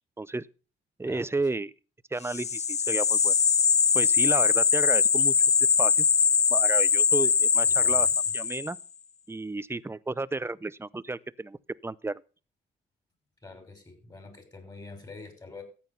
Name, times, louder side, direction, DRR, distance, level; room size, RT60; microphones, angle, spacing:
voice 1, 1.0-1.7 2.1-3.3 3.9-5.3 5.8-6.1 6.5-8.1 8.3-8.8 9.3-12.2, right 3 dB, 10° right, 0.6 m, -32 dB
sound 1, 2.3-8.8, left 6 dB, 35° left, 0.7 m, -22 dB
voice 2, 7.6-8.3 13.4-15.6, left 3 dB, 20° left, 5.9 m, -46 dB
14.0 x 9.1 x 5.5 m
cardioid pair, 90°, 20 cm